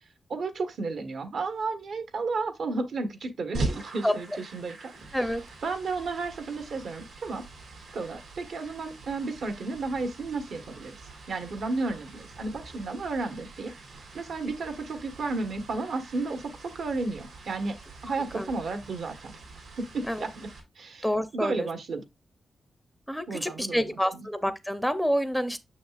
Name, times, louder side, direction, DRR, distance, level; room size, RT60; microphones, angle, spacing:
voice 1, 0.3-5.3 5.6-7.4 7.9-13.7 14.1-17.8 18.0-19.3 19.8-20.5 20.8-21.1 21.3-22.0 23.3-24.3, right 3 dB, 70° right, 1.2 m, -33 dB
sound 1, 3.5-20.6, right 3 dB, 85° right, 3.2 m, -42 dB
voice 2, 5.1-5.4 18.3-18.5 20.1-20.2 21.0-21.7 23.1-25.6, equal, ahead, 0.5 m, -28 dB
6.6 x 6.4 x 2.4 m
wide cardioid pair, 160°, 0 cm